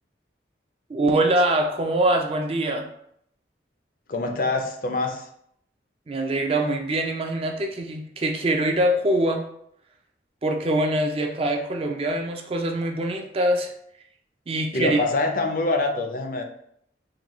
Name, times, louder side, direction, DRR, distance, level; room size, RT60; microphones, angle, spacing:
voice 1, 0.9-2.8 6.1-9.4 10.4-13.7 14.5-15.0, right 1 dB, 30° right, 3 dB, 0.4 m, -23 dB
voice 2, 4.1-5.3 14.7-16.4, left 2 dB, 50° left, 5 dB, 0.4 m, -25 dB
3.8 x 2.2 x 3.0 m, 0.71 s
head